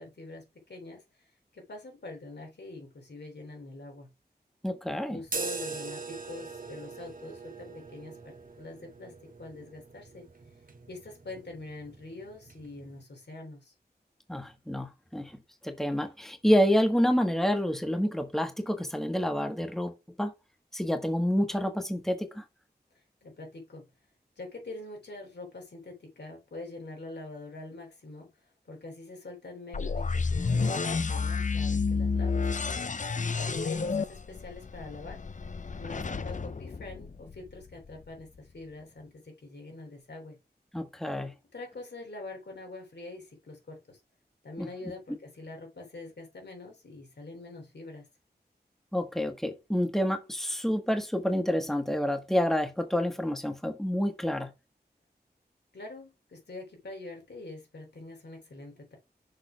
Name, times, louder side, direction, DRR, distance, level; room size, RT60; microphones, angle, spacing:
voice 1, 0.0-4.1 4.9-9.1 9.4-10.2 10.9-13.7 22.9-23.9 24.4-28.3 28.6-32.5 33.4-40.4 41.5-44.0 44.4-48.1 55.7-59.0, left 2 dB, 90° left, 3.2 m, -44 dB
voice 2, 4.6-5.2 14.3-15.4 15.6-20.3 20.7-22.4 40.7-41.3 44.6-44.7 48.9-54.5, equal, ahead, 1.4 m, -28 dB
sound 1, 5.2-13.0, right 4 dB, 55° right, 1.1 m, -42 dB
sound 2, 29.7-37.6, left 4 dB, 50° left, 0.6 m, -30 dB
6.5 x 3.7 x 5.6 m
wide cardioid pair, 60°, 17 cm